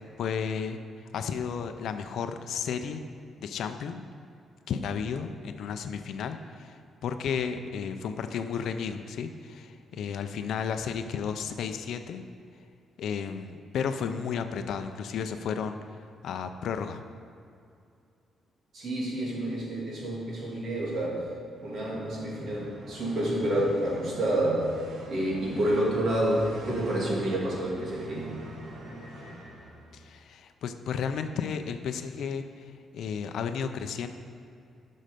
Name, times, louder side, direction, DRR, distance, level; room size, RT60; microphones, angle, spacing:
voice 1, 0.2-0.8 1.1-3.0 3.4-4.0 4.7-12.2 13.0-15.8 16.2-17.0 29.9-34.1, left 6 dB, 65° left, 8 dB, 0.5 m, -33 dB
voice 2, 18.7-21.3 21.6-24.7 25.1-28.4, right 1 dB, 50° right, -4 dB, 2.6 m, -29 dB
sound 1, 21.5-30.2, right 1 dB, 90° right, 2.1 m, -45 dB
12.0 x 6.4 x 5.2 m, 2.4 s
cardioid pair, 170°, 0 cm